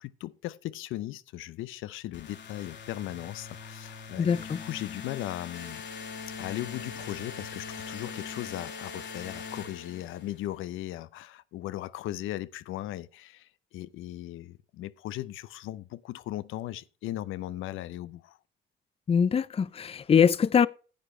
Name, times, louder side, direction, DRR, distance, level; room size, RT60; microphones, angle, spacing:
voice 1, 0.0-5.8 6.4-18.4, left 14 dB, 85° left, 0.6 m, -38 dB
sound 1, 2.1-10.5, left 5 dB, 65° left, 2.0 m, -41 dB
voice 2, 4.2-4.6 19.1-20.7, left 7 dB, 30° left, 0.5 m, -23 dB
10.5 x 8.3 x 4.3 m
cardioid pair, 90°, 20 cm